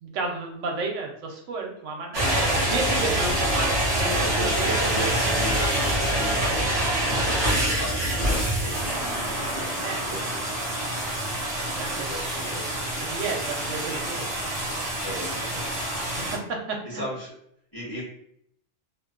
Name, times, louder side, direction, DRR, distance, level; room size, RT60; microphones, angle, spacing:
voice 1, 0.0-2.4 2.7-4.7 9.8-10.1 11.7-12.4 13.0-14.2 16.3-17.0, right 3 dB, 80° right, 2 dB, 0.9 m, -32 dB
sound 1, 2.1-16.4, right 1 dB, 35° right, 0.7 m, -26 dB
voice 2, 4.1-9.7 10.0-10.6 11.9-13.4 15.0-15.4 16.8-17.3 17.7-18.0, right 1 dB, 20° left, -7 dB, 0.7 m, -36 dB
2.5 x 2.2 x 2.3 m, 0.70 s
omnidirectional pair, 1.3 m